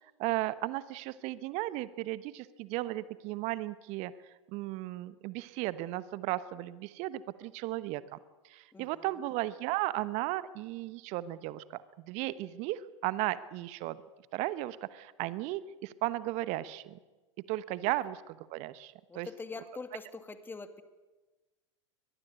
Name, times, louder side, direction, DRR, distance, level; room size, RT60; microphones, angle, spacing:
voice 1, 0.2-8.2 8.4-14.0 14.3-17.0 17.5-19.3, right 16 dB, 45° right, 16 dB, 1.1 m, -35 dB
voice 2, 8.7-9.1 19.1-20.8, left 3 dB, 15° left, 9 dB, 2.1 m, -44 dB
22.5 x 20.5 x 8.4 m, 1.2 s
figure-of-eight pair, 90°, 16 cm